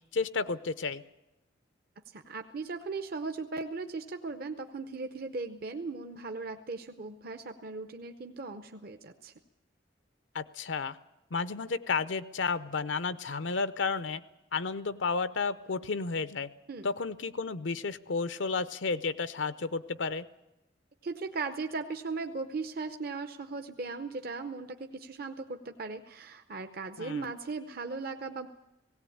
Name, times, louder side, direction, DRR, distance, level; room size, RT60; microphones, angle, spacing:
voice 1, 0.1-1.0 10.3-11.0 11.3-14.2 14.5-16.5 16.8-20.2 27.0-27.3, left 4 dB, 75° left, 14 dB, 0.7 m, -32 dB
voice 2, 2.1-9.3 16.7-16.9 21.0-28.5, right 4 dB, 50° right, 7 dB, 0.8 m, -38 dB
18.0 x 17.0 x 8.6 m, 0.94 s
head